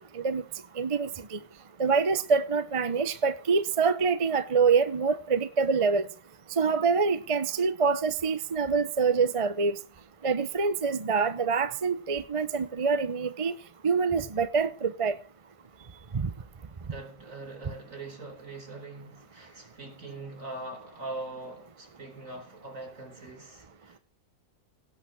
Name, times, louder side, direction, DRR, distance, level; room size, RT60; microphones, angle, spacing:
voice 1, 0.8-1.4 1.8-6.0 6.6-9.7 10.2-13.5 13.8-15.2 16.1-16.3, right 5 dB, 30° right, 0.7 m, -26 dB
voice 2, 16.9-24.0, right 2 dB, 60° right, 4.7 m, -42 dB
17.5 x 6.0 x 6.2 m
omnidirectional pair, 1.6 m